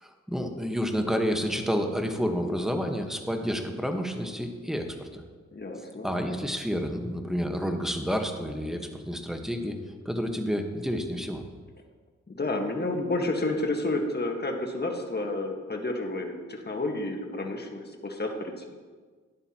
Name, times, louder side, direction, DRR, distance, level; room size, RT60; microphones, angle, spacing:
voice 1, 0.0-5.2 6.0-9.8 10.0-11.4, equal, ahead, 4 dB, 1.4 m, -29 dB
voice 2, 5.5-6.1 12.3-18.7, left 2 dB, 35° left, 3 dB, 1.6 m, -30 dB
12.0 x 10.5 x 3.0 m, 1.5 s
cardioid pair, 50°, 30 cm